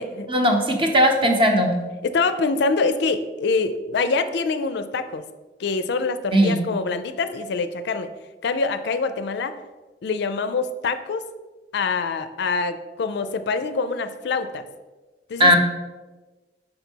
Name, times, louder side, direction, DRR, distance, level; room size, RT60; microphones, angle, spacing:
voice 1, 0.3-1.7 6.3-6.6 15.4-15.6, equal, 30° right, 3 dB, 0.8 m, -17 dB
voice 2, 2.0-5.2 5.6-8.1 8.4-9.5 10.0-11.2 11.7-14.6 15.3-15.5, left 4 dB, 65° left, 10 dB, 0.4 m, -25 dB
5.3 x 4.0 x 4.4 m, 1.2 s
head